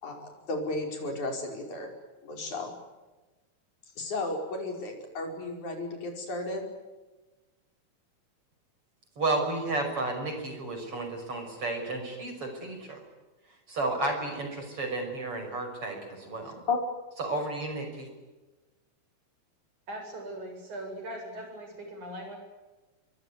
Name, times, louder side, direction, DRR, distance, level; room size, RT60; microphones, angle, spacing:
voice 1, 0.0-1.9 2.2-2.8 4.0-6.6 16.7-16.8, left 3 dB, 65° left, 3 dB, 6.6 m, -33 dB
voice 2, 9.2-13.0 13.7-16.5 17.2-18.1, right 2 dB, 45° right, 5 dB, 6.7 m, -32 dB
voice 3, 19.9-22.4, right 1 dB, 65° right, 3 dB, 9.2 m, -40 dB
26.0 x 23.0 x 9.7 m, 1.2 s
omnidirectional pair, 3.7 m